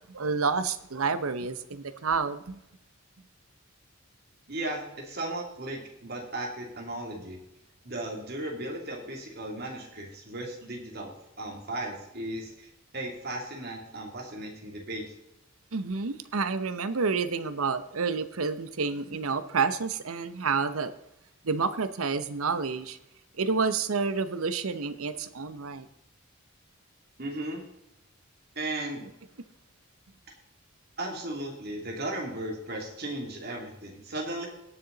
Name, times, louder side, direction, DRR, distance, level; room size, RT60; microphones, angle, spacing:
voice 1, 0.1-2.6 15.7-20.9 21.4-23.0 23.4-25.9, right 4 dB, 85° right, 0.8 m, -29 dB
voice 2, 4.5-7.4 7.8-15.0 27.2-27.6 28.5-29.0 31.0-34.5, right 1 dB, 45° right, 2.7 m, -36 dB
17.5 x 6.8 x 4.0 m
head